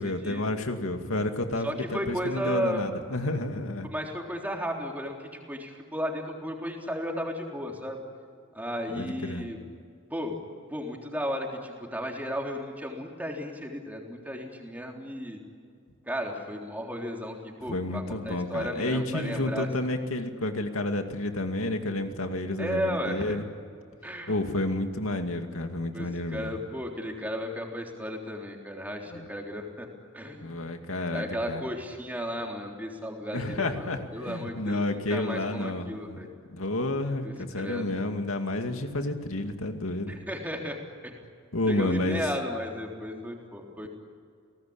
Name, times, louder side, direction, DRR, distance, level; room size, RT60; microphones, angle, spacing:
voice 1, 0.0-3.9 8.9-9.5 17.7-23.4 24.3-26.5 29.1-29.3 30.4-31.6 33.3-36.2 36.5-40.2 41.5-42.3, left 2 dB, 90° left, 5 dB, 2.4 m, -30 dB
voice 2, 1.6-2.8 3.8-8.0 8.5-9.6 10.1-10.4 10.7-15.4 16.1-19.9 22.6-23.3 24.0-24.3 25.9-29.9 30.1-30.6 31.1-36.3 37.2-37.9 40.1-40.8 41.0-41.2 41.7-43.9, equal, 10° right, 0 dB, 3.5 m, -34 dB
30.0 x 19.0 x 8.8 m, 2.2 s
head